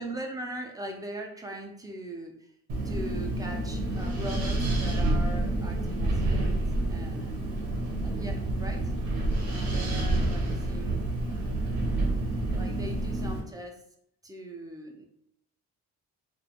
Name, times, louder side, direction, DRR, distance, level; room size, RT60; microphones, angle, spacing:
voice 1, 0.0-2.5 2.8-7.1 8.0-8.9 9.5-11.2 12.5-13.8 14.2-15.1, right 1 dB, 10° right, 2 dB, 0.4 m, -40 dB
Wind, 2.7-13.4, right 2 dB, 80° right, 0.9 m, -28 dB
2.4 x 2.2 x 2.8 m, 0.74 s
cardioid pair, 90°, 30 cm